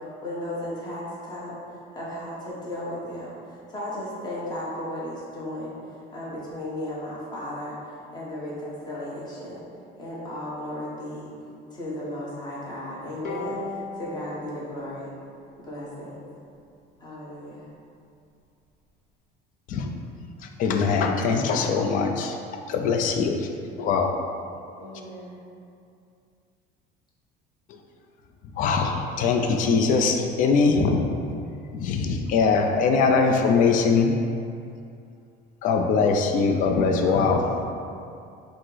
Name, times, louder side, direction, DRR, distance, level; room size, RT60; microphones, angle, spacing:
voice 1, 0.2-1.6 1.9-5.7 6.1-9.6 10.0-11.3 11.7-15.1 15.6-16.2 17.0-17.7 24.8-25.4, left 1 dB, 20° left, -7 dB, 1.0 m, -35 dB
Bowed string instrument, 13.2-16.6, left 3 dB, 60° left, 0.8 m, -39 dB
voice 2, 20.6-22.4 22.7-23.5 23.8-24.1 28.6-31.0 31.7-34.1 35.6-37.5, left 4 dB, 45° left, 3 dB, 0.4 m, -22 dB
voice 3, 36.5-37.6, right 1 dB, 5° right, -6 dB, 0.7 m, -43 dB
5.0 x 2.0 x 3.8 m, 2.5 s
cardioid pair, 155°, 19 cm